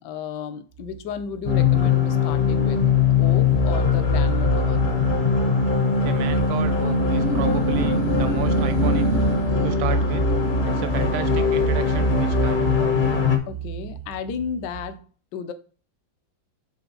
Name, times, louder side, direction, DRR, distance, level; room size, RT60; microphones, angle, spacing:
voice 1, 0.0-2.8 3.2-4.9 13.5-15.1 15.3-15.5, left 7 dB, 70° left, 1.1 m, -33 dB
sound 1, 0.8-15.0, right 4 dB, 60° right, 0.6 m, -31 dB
sound 2, 1.5-13.4, left 4 dB, 45° left, 0.6 m, -21 dB
voice 2, 6.0-9.1 9.6-10.3 10.6-12.7, right 11 dB, 80° right, 1.4 m, -32 dB
7.1 x 3.7 x 3.9 m
omnidirectional pair, 2.1 m